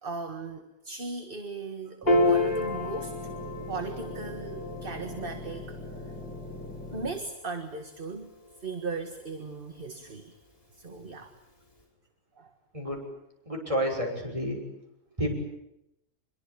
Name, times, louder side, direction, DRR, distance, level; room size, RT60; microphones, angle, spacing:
voice 1, 0.0-3.3 3.7-5.8 6.9-8.3 8.6-10.4 10.7-11.3 12.4-12.5, right 4 dB, 35° right, 7 dB, 1.8 m, -37 dB
sound 1, 2.0-7.1, left 2 dB, 5° left, 4.4 m, -41 dB
Piano, 2.1-8.7, left 2 dB, 35° left, 5.4 m, -31 dB
voice 2, 12.7-13.0 13.4-14.6 15.2-15.3, equal, 20° right, 2 dB, 6.7 m, -30 dB
25.5 x 22.5 x 8.7 m, 0.82 s
omnidirectional pair, 1.7 m